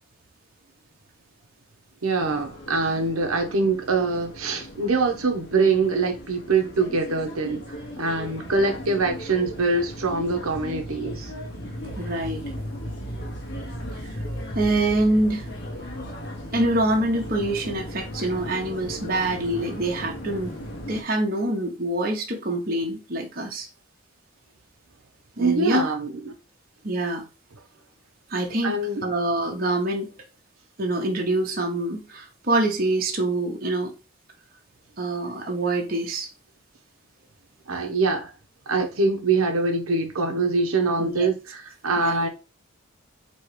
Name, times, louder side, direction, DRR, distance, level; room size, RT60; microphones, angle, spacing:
voice 1, 2.0-7.6 8.0-11.3 25.4-26.1 28.6-29.0 37.7-38.3 38.7-42.3, right 3 dB, 80° right, 0.9 m, -24 dB
sound 1, 2.2-21.0, equal, 55° left, 1.2 m, -36 dB
voice 2, 11.9-12.4 14.0-14.1 14.5-15.4 16.5-20.5 20.9-23.7 25.4-25.9 26.8-27.2 28.3-30.1 30.8-33.9 35.0-36.3 41.0-41.3 42.0-42.2, right 1 dB, 45° right, 1.0 m, -25 dB
4.5 x 3.1 x 3.2 m
head